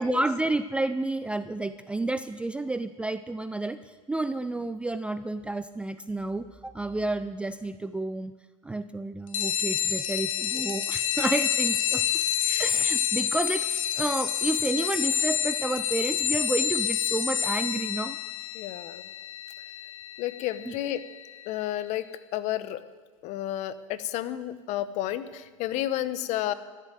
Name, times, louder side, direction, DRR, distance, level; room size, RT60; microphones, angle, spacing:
voice 1, 0.0-8.3 8.6-12.2 12.6-18.2 20.6-20.7, right 2 dB, 5° right, 11 dB, 0.4 m, -30 dB
sound 1, 9.3-21.4, left 9 dB, 90° left, 0.8 m, -28 dB
voice 2, 18.5-19.0 20.2-21.0 21.5-22.1 22.3-22.8 23.2-26.5, left 13 dB, 45° left, 14 dB, 0.8 m, -31 dB
13.5 x 7.6 x 9.2 m, 1.4 s
hypercardioid pair, 105°, 17 cm